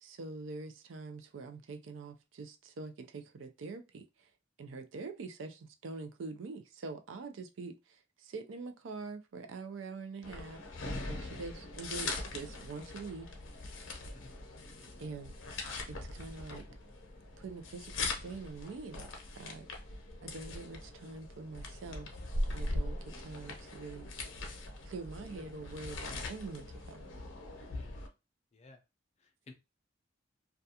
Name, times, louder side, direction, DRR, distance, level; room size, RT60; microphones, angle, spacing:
voice 1, 0.0-4.0 4.6-10.6 11.1-13.3 15.0-15.3 15.9-16.6 17.4-19.7 20.2-22.1 22.5-24.1 24.9-27.0, right 4 dB, 85° right, 0.4 m, -44 dB
sound 1, 10.2-28.1, left 2 dB, 85° left, 0.7 m, -41 dB
voice 2, 27.7-28.1 28.5-28.8 29.2-29.5, left 3 dB, 35° left, 0.4 m, -55 dB
2.3 x 2.3 x 2.7 m
head